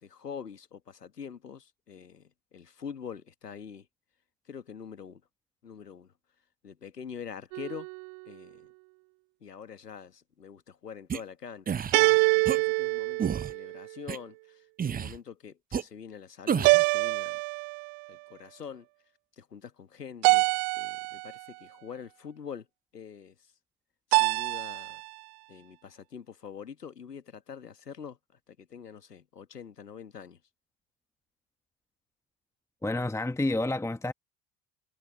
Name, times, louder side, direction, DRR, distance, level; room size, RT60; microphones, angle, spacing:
voice 1, 0.0-3.9 4.5-5.2 5.6-6.1 6.6-7.9 8.3-8.7 9.4-17.4 18.1-18.9 19.4-20.5 20.7-22.7 22.9-23.3 24.1-25.0 25.5-28.2 28.5-30.4, left 7 dB, 85° left, 1.7 m, -44 dB
sound 1, 7.5-8.2 11.9-13.9 16.6-18.0 20.2-21.4 24.1-25.1, right 32 dB, 50° right, 0.7 m, -25 dB
sound 2, 11.1-11.2 11.7-11.9 12.5-12.6 13.2-13.5 14.1-14.2 14.8-15.2 15.7-15.8 16.5-16.8, right 7 dB, 20° right, 0.7 m, -30 dB
voice 2, 32.8-34.1, left 2 dB, 5° left, 1.3 m, -29 dB
figure-of-eight pair, 65°, 46 cm